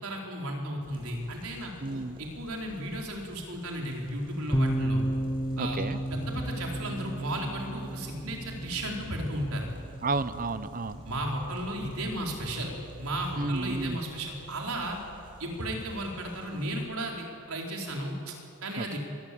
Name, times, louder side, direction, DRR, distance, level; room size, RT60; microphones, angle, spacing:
voice 1, 0.0-5.0 5.6-5.8 6.1-9.7 11.0-12.7 13.0-15.0 15.4-19.0, right 1 dB, 75° right, 0 dB, 4.7 m, -34 dB
sound 1, 0.8-16.8, right 1 dB, 25° right, 5.5 m, -53 dB
voice 2, 1.8-2.2 5.6-6.0 10.0-11.0 13.4-14.0 18.8-19.0, right 3 dB, 40° right, 13 dB, 0.8 m, -32 dB
sound 2, 4.5-13.9, right 1 dB, 10° left, 1.1 m, -34 dB
24.0 x 21.0 x 8.8 m, 2.6 s
head